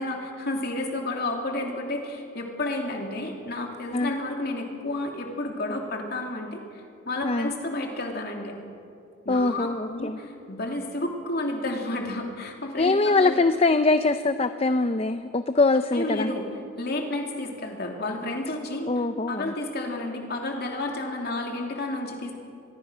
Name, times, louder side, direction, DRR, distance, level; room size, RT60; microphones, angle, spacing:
voice 1, 0.0-6.6 7.1-8.5 9.2-13.4 15.9-16.5 16.8-18.9 19.3-22.3, left 2 dB, 50° left, 2 dB, 2.9 m, -31 dB
voice 2, 9.3-10.2 12.8-16.3 18.9-19.5, left 3 dB, 30° left, 10 dB, 0.5 m, -23 dB
24.5 x 21.5 x 6.2 m, 2.5 s
head